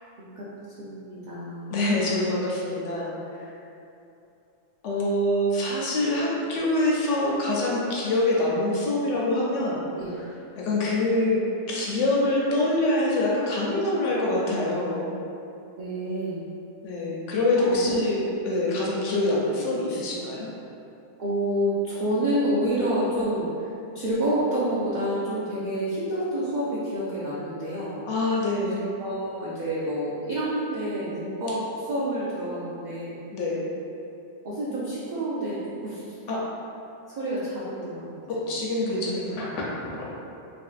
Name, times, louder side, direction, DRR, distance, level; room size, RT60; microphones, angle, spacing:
voice 1, 0.8-1.8 9.9-10.1 15.8-16.4 17.6-18.0 21.2-23.7 23.9-28.0 28.8-33.2 34.4-36.1 37.2-38.1 39.1-39.3, right 1 dB, 70° right, -9 dB, 0.4 m, -28 dB
voice 2, 1.7-3.5 4.8-9.8 10.2-10.3 10.6-11.4 11.7-15.0 16.8-20.5 28.1-28.8 33.3-33.6 36.3-36.4 38.3-39.5 39.9-40.1, left 1 dB, 70° left, -4 dB, 0.9 m, -25 dB
3.1 x 2.6 x 2.4 m, 2.7 s
omnidirectional pair, 1.4 m